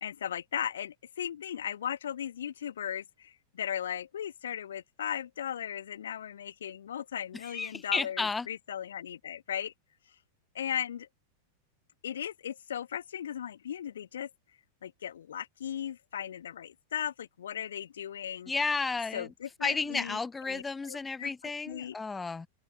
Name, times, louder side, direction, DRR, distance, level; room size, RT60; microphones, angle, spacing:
voice 1, 0.0-9.7 10.5-11.1 12.0-14.3 14.8-18.5 19.1-20.2 20.5-20.6 20.9-21.3 21.7-21.9, left 9 dB, 65° left, 1.6 m, -37 dB
voice 2, 7.4-8.5 18.5-19.3 19.6-22.5, left 4 dB, 10° left, 0.7 m, -32 dB
figure-of-eight pair, 90°, 0 cm